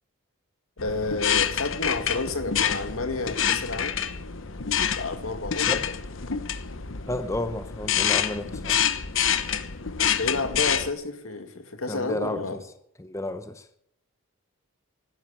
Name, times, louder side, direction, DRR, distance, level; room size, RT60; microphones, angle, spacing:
voice 1, 0.8-4.0 5.0-5.8 10.0-12.6, left 3 dB, 85° left, 2.2 m, -30 dB
sound 1, 0.8-10.9, left 8 dB, 65° left, 1.0 m, -27 dB
voice 2, 7.1-8.8 11.9-12.6 13.0-13.7, left 1 dB, 15° left, 0.8 m, -32 dB
15.5 x 12.5 x 7.4 m
head